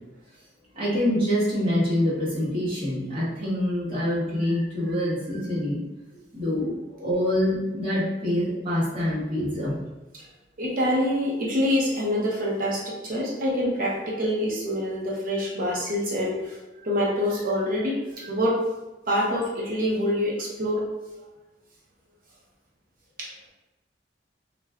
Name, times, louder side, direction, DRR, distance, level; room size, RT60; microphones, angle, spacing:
voice 1, 0.7-5.8 6.3-6.7 7.0-9.8, left 1 dB, 30° right, -10 dB, 1.2 m, -25 dB
voice 2, 10.6-16.6 16.8-18.6 19.1-20.8 23.2-23.3, equal, 50° right, -4 dB, 0.7 m, -26 dB
2.4 x 2.3 x 3.3 m, 1.1 s
head